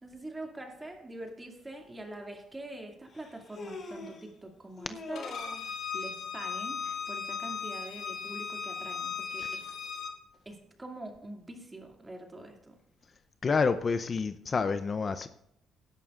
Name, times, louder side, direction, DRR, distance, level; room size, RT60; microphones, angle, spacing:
voice 1, 0.0-5.3 5.9-9.7 10.5-12.8, right 2 dB, 15° right, 2 dB, 2.4 m, -44 dB
Human voice, 1.7-1.8 3.1-4.3 4.8-5.8, left 3 dB, 55° left, 2.7 m, -44 dB
Bowed string instrument, 5.2-10.1, left 6 dB, 75° left, 2.5 m, -37 dB
voice 2, 13.4-15.3, left 5 dB, 40° left, 11 dB, 0.5 m, -28 dB
17.5 x 11.0 x 2.5 m, 0.75 s
cardioid pair, 90°, 0 cm